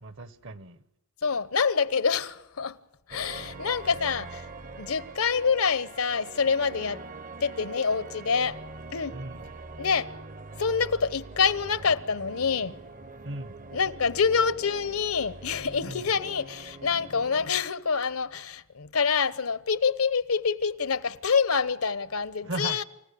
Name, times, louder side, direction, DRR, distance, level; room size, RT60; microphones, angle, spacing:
voice 1, 0.0-0.8 9.1-9.5 13.2-13.6 15.9-16.1 22.4-22.8, right 1 dB, 60° right, 1.3 m, -37 dB
voice 2, 1.2-2.8 3.1-4.5 4.8-7.0 7.4-8.6 8.9-9.2 9.8-10.1 10.6-12.7 13.7-22.8, left 5 dB, 80° left, 1.0 m, -26 dB
sound 1, 3.1-17.5, right 3 dB, 40° right, 0.8 m, -43 dB
29.0 x 15.5 x 8.5 m
head